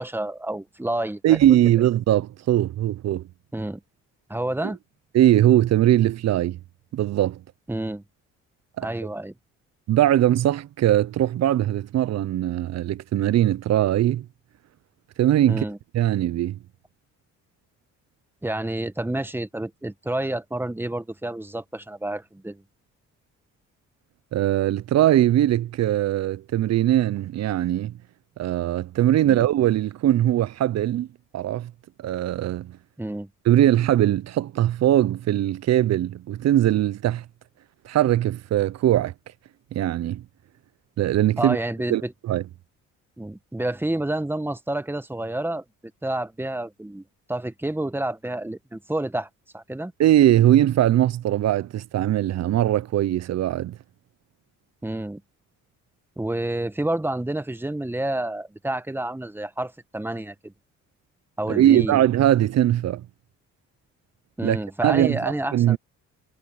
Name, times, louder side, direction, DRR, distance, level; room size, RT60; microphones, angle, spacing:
voice 1, 0.0-1.4 3.5-3.8 4.3-4.8 7.7-8.0 8.8-9.3 15.5-15.8 18.4-22.6 29.2-29.5 33.0-33.3 41.4-42.1 43.2-45.6 46.0-49.9 54.8-55.2 56.2-60.5 61.4-62.0 64.4-65.8, right 1 dB, 5° right, 1.2 m, -29 dB
voice 2, 1.2-3.2 5.1-6.6 6.9-7.4 8.8-8.9 9.9-14.3 15.2-15.6 15.9-16.6 24.3-27.9 28.4-31.1 31.3-31.7 32.0-32.8 33.5-37.2 37.8-39.1 39.7-40.2 41.0-41.6 41.9-42.4 50.0-53.8 61.5-63.1 64.4-65.8, right 12 dB, 60° right, 0.6 m, -21 dB
cardioid pair, 90°, 30 cm